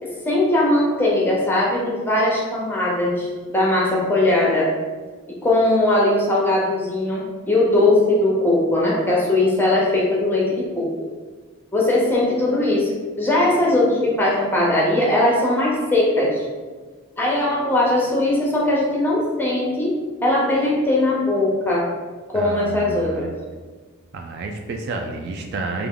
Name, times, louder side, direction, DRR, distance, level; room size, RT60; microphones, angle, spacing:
voice 1, 0.0-4.7 5.4-10.9 11.7-12.9 13.2-16.5 17.2-19.9 20.2-21.9 22.3-23.3, left 1 dB, 10° left, -4 dB, 0.7 m, -19 dB
voice 2, 22.3-23.4 24.1-25.9, right 3 dB, 50° right, 3 dB, 0.3 m, -30 dB
3.4 x 2.5 x 3.6 m, 1.4 s
head